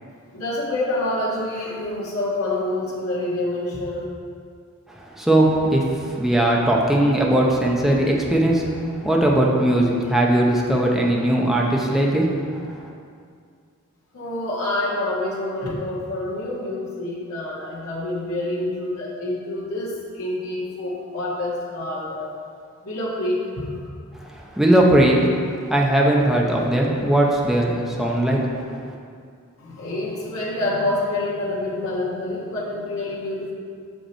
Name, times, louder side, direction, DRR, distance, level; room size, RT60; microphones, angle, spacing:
voice 1, 0.3-4.0 14.1-22.3 22.8-23.9 29.6-33.5, left 1 dB, 75° left, -7 dB, 1.6 m, -27 dB
voice 2, 4.9-12.8 24.3-25.3 25.7-28.6, right 1 dB, ahead, -3 dB, 0.7 m, -19 dB
6.6 x 5.1 x 4.4 m, 2.2 s
head